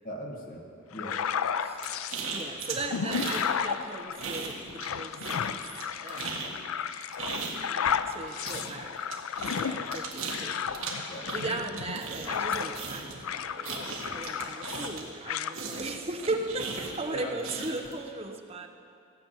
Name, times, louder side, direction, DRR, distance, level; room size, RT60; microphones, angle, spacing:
voice 1, 0.0-1.2 11.1-11.6 17.1-17.7, equal, 40° left, -1 dB, 1.8 m, -40 dB
sound 1, 0.9-2.2 2.7-12.9 13.2-15.0 15.3-15.5, left 7 dB, 80° left, 0.4 m, -33 dB
sound 2, 1.8-3.5 3.8-4.9 5.2-15.2 15.5-17.9, right 4 dB, 75° right, 1.6 m, -37 dB
voice 2, 2.3-5.6 5.9-6.6 7.6-9.0 9.4-11.0 11.3-18.7, right 2 dB, 30° right, 5 dB, 0.8 m, -37 dB
15.5 x 6.0 x 8.1 m, 2.4 s
head